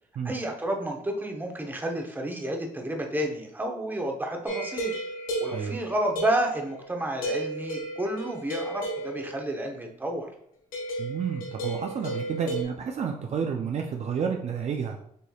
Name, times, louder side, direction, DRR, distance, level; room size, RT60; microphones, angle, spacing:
voice 1, 0.2-4.9 5.4-10.3, right 1 dB, 15° right, 2 dB, 0.9 m, -30 dB
sound 1, 4.4-6.9 7.2-9.5 10.7-12.6, right 1 dB, 70° left, 1.6 m, -33 dB
voice 2, 11.0-15.0, right 6 dB, 45° right, 2 dB, 0.5 m, -30 dB
6.9 x 3.2 x 2.4 m, 0.69 s
cardioid pair, 105°, 15 cm